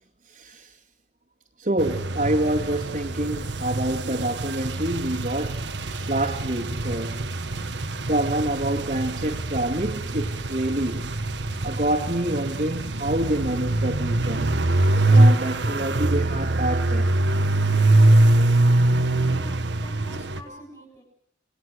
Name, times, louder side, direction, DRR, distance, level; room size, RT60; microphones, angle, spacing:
voice 1, 0.3-0.7 1.6-7.3 8.0-11.1 11.6-14.5 15.1-17.1, right 1 dB, 45° right, 2.2 m, -27 dB
sound 1, 1.8-20.4, right 2 dB, 70° right, 1.6 m, -23 dB
voice 2, 19.1-21.0, equal, 20° left, 7.1 m, -45 dB
28.0 x 20.0 x 6.4 m
head